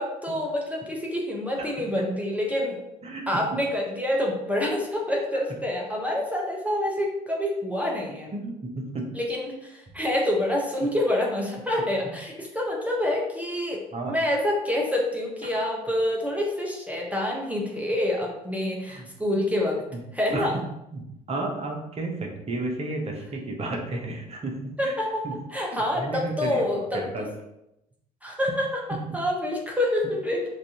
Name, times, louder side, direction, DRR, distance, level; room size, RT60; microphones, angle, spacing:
voice 1, 0.0-2.8 3.3-8.3 9.1-19.8 20.1-20.5 24.8-25.2 25.5-27.3 28.2-28.8 29.1-30.5, left 1 dB, 5° right, -1 dB, 1.0 m, -27 dB
voice 2, 1.6-2.1 3.0-3.6 8.3-9.1 12.0-12.1 13.9-14.2 15.4-15.5 18.9-19.0 19.3-19.4 20.3-20.6 20.9-21.0 21.3-24.9 25.2-25.4 25.7-26.6 26.9-27.3 28.5-28.6 28.9-29.2, right 2 dB, 30° right, 1 dB, 1.1 m, -33 dB
5.8 x 2.7 x 2.9 m, 0.86 s
figure-of-eight pair, 55°, 21 cm